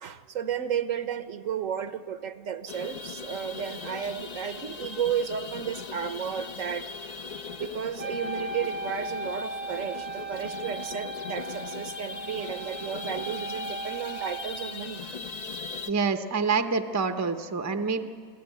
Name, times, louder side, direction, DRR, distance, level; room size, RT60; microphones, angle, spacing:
voice 1, 0.0-6.9 7.6-15.0, right 8 dB, 65° right, 11 dB, 1.3 m, -33 dB
sound 1, 2.7-15.9, left 4 dB, 40° left, 0.6 m, -39 dB
Wind instrument woodwind instrument, 8.0-14.9, right 2 dB, 90° right, 1.6 m, -37 dB
voice 2, 15.9-18.0, right 4 dB, 15° right, 9 dB, 0.6 m, -27 dB
26.5 x 15.5 x 9.3 m, 2.2 s
omnidirectional pair, 1.5 m